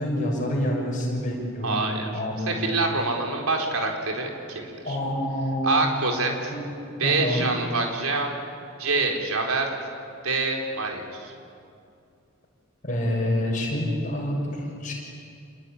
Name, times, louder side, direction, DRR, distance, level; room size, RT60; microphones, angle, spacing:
voice 1, 0.0-2.6 4.8-5.8 6.5-6.7 7.0-7.5 12.8-14.9, equal, 35° left, -1 dB, 6.2 m, -27 dB
voice 2, 1.6-2.1 2.5-5.0 5.6-6.5 7.0-8.4 8.8-9.7 10.2-11.3, right 3 dB, 85° right, 2 dB, 4.2 m, -26 dB
28.5 x 21.0 x 10.0 m, 2.5 s
head